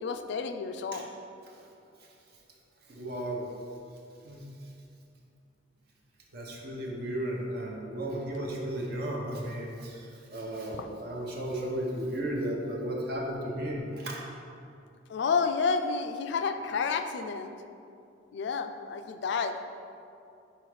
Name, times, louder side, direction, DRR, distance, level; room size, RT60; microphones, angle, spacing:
voice 1, 0.0-1.1 10.8-10.9 15.1-17.5 18.3-19.5, left 5 dB, 60° left, 8 dB, 0.3 m, -30 dB
voice 2, 2.9-3.5 4.2-4.4 6.3-14.2, right 1 dB, 55° right, -1 dB, 0.8 m, -34 dB
4.7 x 4.3 x 4.9 m, 2.6 s
head